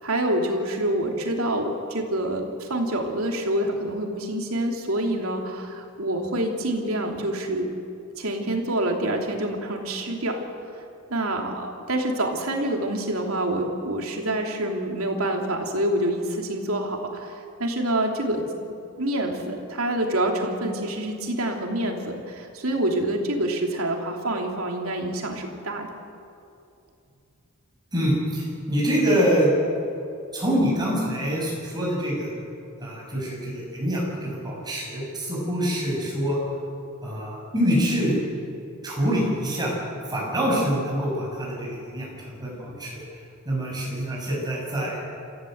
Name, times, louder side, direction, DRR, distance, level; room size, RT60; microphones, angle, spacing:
voice 1, 0.0-7.7 8.2-10.4 11.1-18.4 19.0-25.9, right 1 dB, 80° right, 2 dB, 3.0 m, -27 dB
voice 2, 27.9-29.5 30.3-32.3 32.8-36.4 37.0-38.2 38.8-39.7 40.1-43.0 43.4-45.0, equal, 20° right, -4 dB, 7.8 m, -25 dB
27.5 x 15.0 x 8.0 m, 2.6 s
head